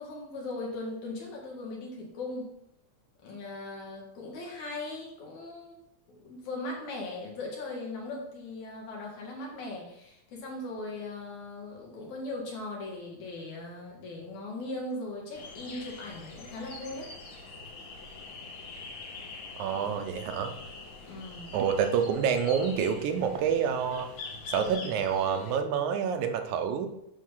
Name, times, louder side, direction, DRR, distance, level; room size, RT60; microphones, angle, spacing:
voice 1, 0.0-2.5 3.2-5.8 6.1-17.4 21.1-21.6, left 2 dB, 70° left, -1 dB, 3.2 m, -39 dB
sound 1, 15.3-25.6, left 3 dB, 55° left, 1.6 m, -44 dB
voice 2, 19.6-20.5 21.5-24.1 24.5-26.9, right 7 dB, 85° right, 6 dB, 2.1 m, -28 dB
9.5 x 3.6 x 5.5 m, 0.80 s
omnidirectional pair, 3.5 m